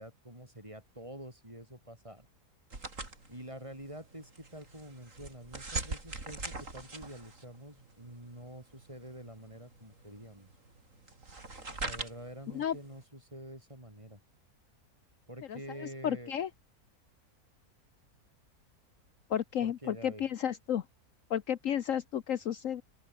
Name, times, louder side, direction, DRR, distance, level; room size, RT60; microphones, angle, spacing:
voice 1, 0.0-2.3 3.3-10.5 11.7-14.2 15.3-16.3 19.6-20.2, right 1 dB, 20° right, 8.0 m, -47 dB
sound 1, 2.7-13.0, right 3 dB, 55° right, 4.5 m, -43 dB
voice 2, 15.5-16.5 19.3-20.8 21.3-22.8, left 9 dB, 65° left, 1.2 m, -32 dB
open air
omnidirectional pair, 1.6 m